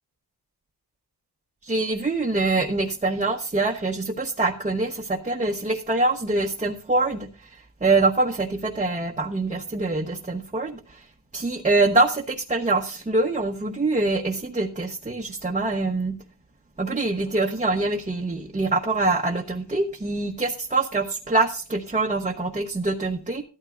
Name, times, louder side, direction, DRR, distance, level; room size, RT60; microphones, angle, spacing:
voice 1, 1.6-7.3 7.8-10.8 11.3-16.1 16.8-23.4, right 2 dB, 20° right, 2 dB, 0.9 m, -24 dB
13.5 x 12.5 x 2.5 m, 0.36 s
wide cardioid pair, 110°, 40 cm